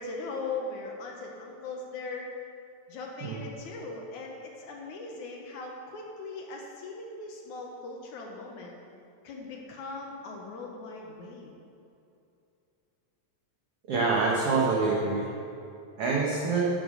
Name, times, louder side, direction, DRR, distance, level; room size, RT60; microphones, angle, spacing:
voice 1, 0.0-2.3 2.9-8.7 9.2-11.5, left 3 dB, 65° left, 0 dB, 2.2 m, -39 dB
voice 2, 13.9-15.3 16.0-16.7, right 4 dB, 60° right, -4 dB, 1.7 m, -26 dB
10.5 x 7.7 x 6.4 m, 2.7 s
omnidirectional pair, 4.1 m